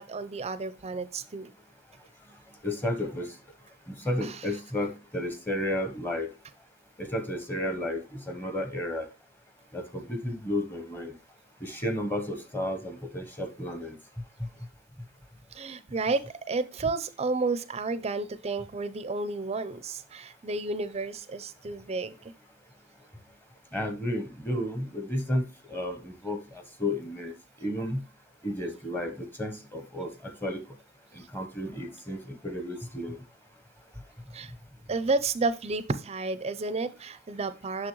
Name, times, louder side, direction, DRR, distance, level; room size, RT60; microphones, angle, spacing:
voice 1, 0.0-1.5 4.2-4.4 15.5-22.3 34.3-34.5 34.9-37.9, right 3 dB, 30° right, 14 dB, 0.5 m, -31 dB
voice 2, 2.6-3.3 3.9-6.3 7.0-9.1 9.7-11.1 11.6-14.0 14.4-14.5 23.7-25.4 25.7-28.0 28.4-30.6 31.1-33.2, left 1 dB, 10° left, 7 dB, 0.8 m, -32 dB
6.3 x 6.1 x 3.0 m, 0.29 s
head